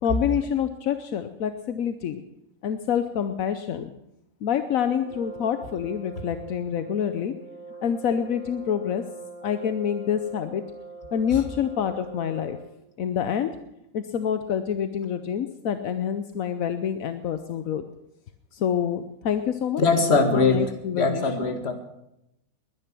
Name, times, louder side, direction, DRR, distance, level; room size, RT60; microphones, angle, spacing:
voice 1, 0.0-2.2 2.6-3.9 4.4-7.3 7.8-9.0 9.4-10.6 11.1-12.6 13.0-13.5 13.9-17.8 18.5-19.9 20.3-21.5, left 8 dB, 75° left, 9 dB, 1.2 m, -27 dB
Brass instrument, 5.0-12.8, right 3 dB, 5° right, 3.0 m, -42 dB
voice 2, 19.8-21.7, left 3 dB, 50° left, 6 dB, 2.1 m, -22 dB
20.5 x 10.5 x 6.1 m, 0.85 s
omnidirectional pair, 1.4 m